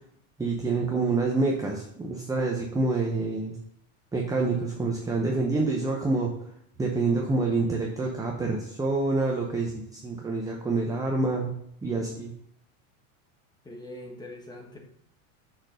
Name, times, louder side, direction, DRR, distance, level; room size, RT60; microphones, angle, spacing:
voice 1, 0.4-3.6 4.1-6.3 6.8-11.5 11.8-12.3, right 3 dB, 10° right, 0 dB, 0.7 m, -27 dB
voice 2, 13.6-14.8, left 1 dB, 10° left, 1 dB, 1.3 m, -42 dB
6.6 x 4.0 x 6.4 m, 0.70 s
supercardioid pair, 140°, 43 cm